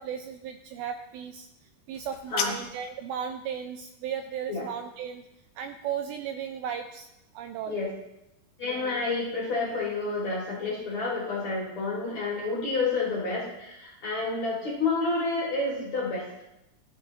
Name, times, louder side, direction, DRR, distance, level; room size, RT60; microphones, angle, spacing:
voice 1, 0.0-1.5 1.9-5.3 5.6-7.1 7.3-7.8, right 8 dB, 85° right, 7 dB, 2.1 m, -35 dB
sound 1, 1.9-3.0, left 8 dB, 80° left, 3.0 m, -34 dB
voice 2, 8.6-16.3, left 3 dB, 50° left, -5 dB, 2.9 m, -29 dB
15.0 x 9.4 x 2.8 m, 0.90 s
omnidirectional pair, 4.9 m